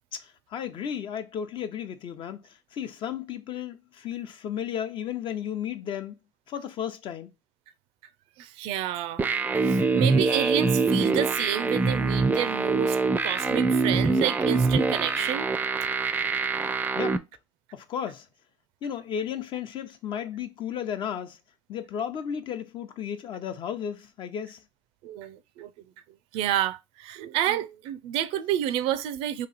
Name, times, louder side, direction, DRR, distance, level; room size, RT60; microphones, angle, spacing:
voice 1, 0.1-6.2 6.5-7.3 16.9-17.2 17.7-18.3 18.8-21.4 21.7-24.6, left 8 dB, 55° left, 0.7 m, -34 dB
voice 2, 8.4-9.2 9.7-13.0 13.2-15.5 15.8-15.9 25.0-25.7 26.3-29.5, right 11 dB, 80° right, 0.5 m, -29 dB
sound 1, 9.2-17.2, right 3 dB, 15° right, 0.4 m, -24 dB
3.1 x 2.8 x 4.0 m
cardioid pair, 105°, 10 cm